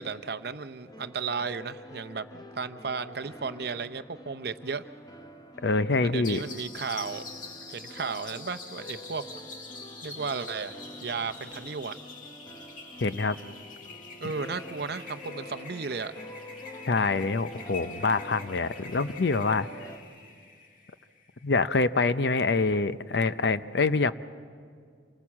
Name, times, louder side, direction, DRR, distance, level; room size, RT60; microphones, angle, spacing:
voice 1, 0.0-4.8 6.0-7.2 7.7-9.2 10.0-11.9 14.2-16.1, right 5 dB, 60° right, 11 dB, 0.7 m, -34 dB
sound 1, 0.9-20.0, left 1 dB, 20° left, 1.1 m, -46 dB
voice 2, 5.6-6.4 13.0-13.4 16.9-19.7 21.4-24.1, left 3 dB, 65° left, 13 dB, 0.6 m, -25 dB
sound 2, 6.2-21.5, left 3 dB, 45° left, 1.9 m, -45 dB
27.0 x 20.0 x 7.3 m, 2.1 s
head